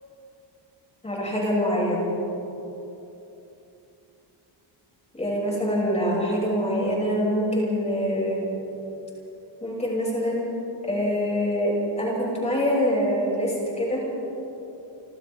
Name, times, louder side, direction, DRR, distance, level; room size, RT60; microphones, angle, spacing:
voice 1, 1.0-2.1 5.1-8.4 9.6-10.5 10.8-14.0, equal, 15° left, -4 dB, 6.3 m, -25 dB
29.5 x 26.0 x 3.5 m, 3.0 s
wide cardioid pair, 175°, 47 cm